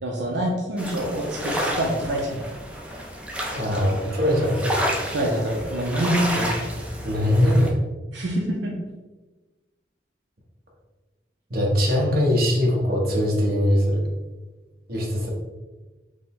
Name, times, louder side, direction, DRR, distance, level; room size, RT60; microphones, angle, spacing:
voice 1, 0.0-2.5 5.1-6.4 8.1-8.7, right 1 dB, 85° right, -1 dB, 0.6 m, -26 dB
sound 1, 0.8-7.7, equal, 5° right, 0.5 m, -30 dB
voice 2, 3.5-4.8 6.3-6.5 7.0-7.7 11.5-14.0 14.9-15.3, left 1 dB, 55° right, -3 dB, 1.1 m, -21 dB
5.1 x 2.1 x 3.7 m, 1.2 s
head